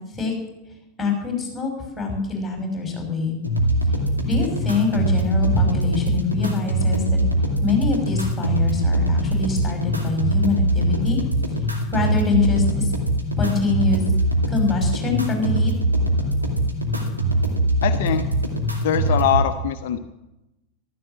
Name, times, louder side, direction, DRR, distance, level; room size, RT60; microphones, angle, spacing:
voice 1, 1.0-3.3 4.2-7.2 7.6-11.2 11.9-12.9 13.4-14.0 14.5-15.7, left 4 dB, 15° left, 2 dB, 6.0 m, -24 dB
sound 1, 3.4-19.4, right 1 dB, 85° right, 2.4 m, -22 dB
voice 2, 17.8-18.3 18.8-20.0, left 10 dB, 55° left, 9 dB, 0.9 m, -22 dB
14.5 x 13.5 x 7.5 m, 0.95 s
figure-of-eight pair, 90°, 0 cm